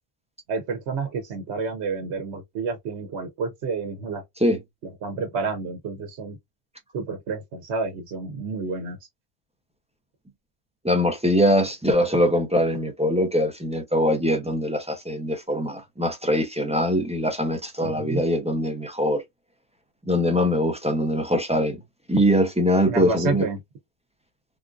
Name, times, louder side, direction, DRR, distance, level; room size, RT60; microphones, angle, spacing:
voice 1, 0.5-4.2 4.8-6.4 6.9-9.0 17.8-18.2 22.9-23.6, right 4 dB, 80° right, 1.0 m, -29 dB
voice 2, 10.8-19.2 20.1-21.8 22.1-23.5, equal, 10° right, 0.4 m, -22 dB
3.5 x 2.5 x 2.3 m
omnidirectional pair, 1.1 m